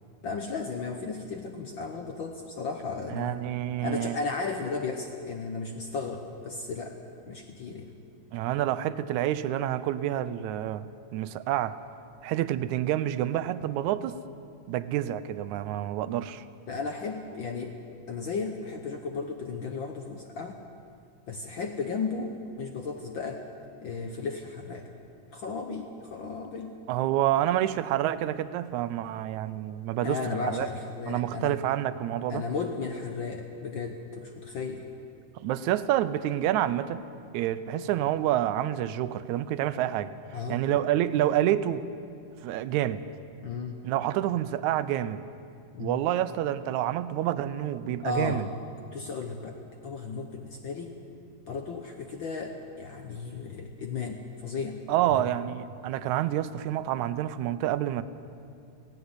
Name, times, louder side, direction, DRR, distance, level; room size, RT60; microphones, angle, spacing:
voice 1, 0.2-3.4 3.8-7.0 7.3-7.9 16.7-17.7 18.1-20.6 21.3-23.4 23.8-24.9 25.3-26.8 30.0-31.6 32.3-34.8 40.3-40.8 43.4-43.7 45.7-46.0 48.0-48.5 48.9-50.9 51.5-54.8 55.1-55.2, left 4 dB, 65° left, 4 dB, 1.2 m, -34 dB
voice 2, 3.1-4.2 8.3-11.8 12.2-14.2 14.7-16.4 26.9-30.2 30.5-30.7 31.1-32.4 35.4-37.0 37.3-40.1 40.5-41.9 42.4-43.0 43.8-45.2 45.8-48.5 54.9-58.0, right 12 dB, 80° right, 14 dB, 2.0 m, -28 dB
17.0 x 16.5 x 9.6 m, 2.5 s
omnidirectional pair, 3.5 m